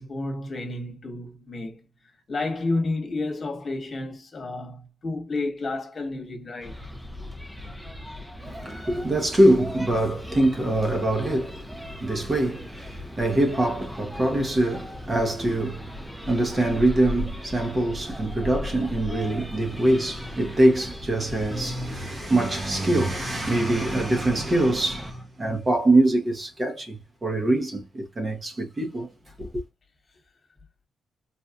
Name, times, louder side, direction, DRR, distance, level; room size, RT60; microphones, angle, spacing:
voice 1, 0.0-1.8 2.3-6.7 29.4-29.5, left 2 dB, 35° left, 1.3 m, -31 dB
sound 1, 6.6-25.1, left 1 dB, 5° right, 0.5 m, -38 dB
voice 2, 8.4-29.1 29.4-29.6, right 1 dB, 25° right, 0.8 m, -24 dB
4.2 x 2.3 x 2.4 m
cardioid pair, 135°, 0 cm